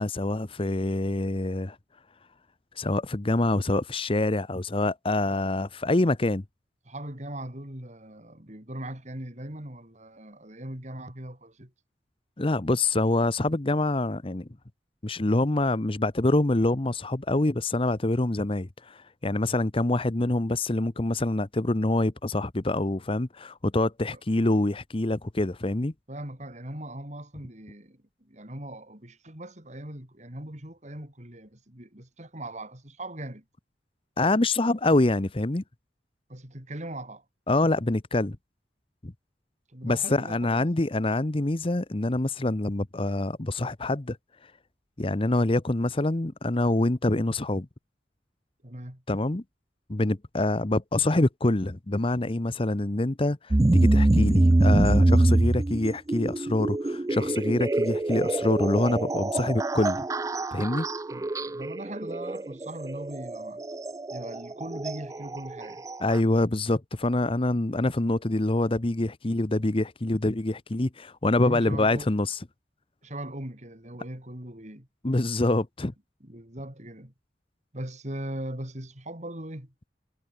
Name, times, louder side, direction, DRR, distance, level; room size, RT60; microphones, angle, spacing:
voice 1, 0.0-1.8 2.8-6.4 12.4-14.5 15.0-25.9 34.2-35.6 37.5-38.4 39.0-39.1 39.8-44.2 45.0-47.7 49.1-49.4 49.9-60.0 60.5-60.9 66.0-72.4 75.0-75.9, left 2 dB, 30° left, 0.9 m, -25 dB
voice 2, 6.8-11.7 24.1-24.2 26.1-33.4 36.3-37.2 39.7-40.6 48.6-49.0 61.1-63.6 64.1-65.9 71.4-72.1 73.0-74.9 76.2-77.1 77.7-79.9, right 1 dB, 40° right, 4.7 m, -40 dB
sound 1, 53.5-66.2, right 2 dB, 20° right, 0.4 m, -25 dB
head